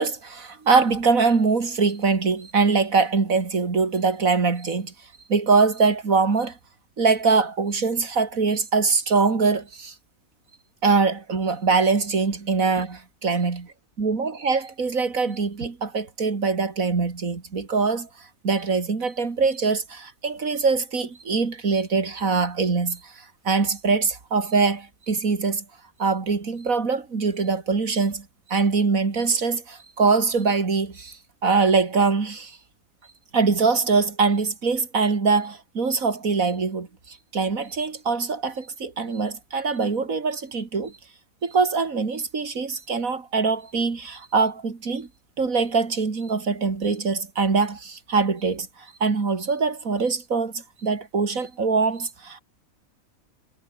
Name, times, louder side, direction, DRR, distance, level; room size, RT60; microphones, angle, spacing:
voice 1, 0.0-4.9 5.3-6.6 7.0-9.9 10.8-13.7 14.0-25.6 26.0-32.6 33.3-41.0 41.4-45.1 45.4-52.4, right 4 dB, 80° right, 3.0 m, -23 dB
omnidirectional pair, 1.4 m